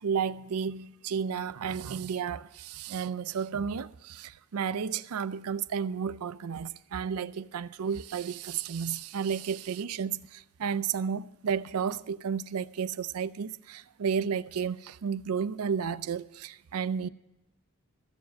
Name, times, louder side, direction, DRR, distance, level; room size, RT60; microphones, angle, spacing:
voice 1, 0.0-17.1, right 7 dB, 90° right, 0.4 m, -32 dB
14.0 x 7.2 x 7.4 m
head